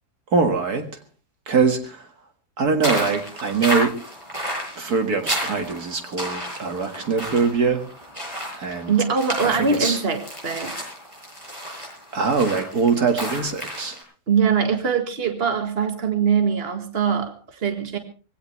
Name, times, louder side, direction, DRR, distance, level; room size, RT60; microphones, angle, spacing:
voice 1, 0.3-0.9 1.5-2.1 2.6-3.9 4.8-7.8 8.6-8.9 9.4-10.0 12.1-14.0, right 5 dB, 70° right, 6 dB, 2.3 m, -22 dB
sound 1, 2.8-14.0, equal, 20° right, 7.9 m, -32 dB
voice 2, 8.9-10.7 14.3-18.0, right 6 dB, 35° right, 6 dB, 2.0 m, -22 dB
21.5 x 16.5 x 3.2 m, 0.37 s
omnidirectional pair, 1.7 m